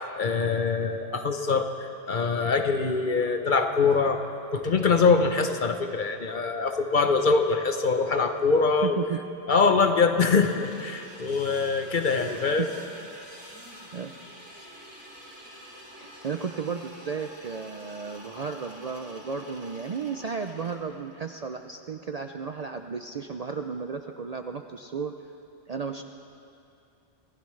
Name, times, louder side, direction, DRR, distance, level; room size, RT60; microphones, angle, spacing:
voice 1, 0.2-4.2 4.5-9.0 9.5-12.7, left 4 dB, 50° left, 6 dB, 0.9 m, -23 dB
voice 2, 8.8-9.2 12.3-12.7 13.9-14.1 15.9-25.1 25.7-26.0, right 5 dB, 50° right, 6 dB, 0.5 m, -34 dB
sound 1, 10.4-20.8, equal, 20° right, 2.5 m, -47 dB
26.0 x 16.0 x 3.2 m, 2.6 s
omnidirectional pair, 1.1 m